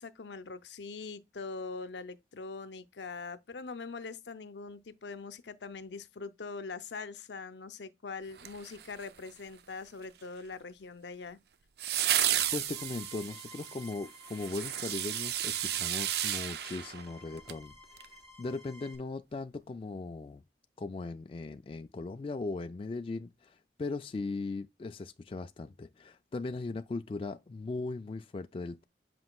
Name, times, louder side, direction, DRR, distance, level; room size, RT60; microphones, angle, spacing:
voice 1, 0.0-11.4, left 4 dB, 85° left, 0.6 m, -42 dB
sound 1, 8.4-9.3 11.8-17.6 18.0-18.1, right 11 dB, 60° right, 0.4 m, -33 dB
voice 2, 12.5-17.7 18.4-20.4 20.8-28.8, left 3 dB, 30° left, 0.3 m, -38 dB
sound 2, 12.6-18.9, left 2 dB, 20° right, 1.5 m, -54 dB
7.8 x 5.2 x 2.3 m
head